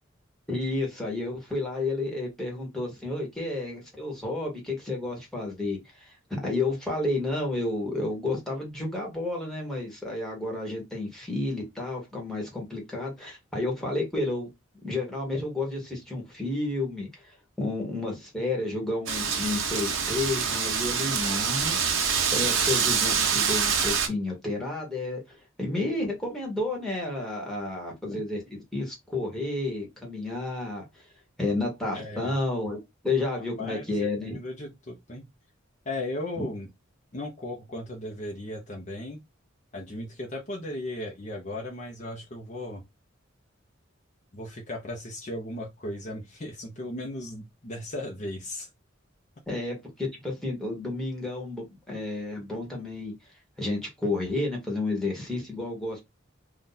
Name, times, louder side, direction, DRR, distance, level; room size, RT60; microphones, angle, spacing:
voice 1, 0.5-14.5 14.8-21.8 22.3-31.0 31.4-34.4 36.4-36.5 49.5-53.1 53.6-56.0, left 2 dB, ahead, 1.2 m, -31 dB
Wind, 19.1-24.1, right 6 dB, 70° right, 0.7 m, -26 dB
voice 2, 31.9-32.4 33.6-33.9 34.2-35.3 35.9-36.7 37.1-39.2 39.7-42.8 44.3-48.7, left 1 dB, 35° left, 0.7 m, -36 dB
2.7 x 2.4 x 3.8 m
head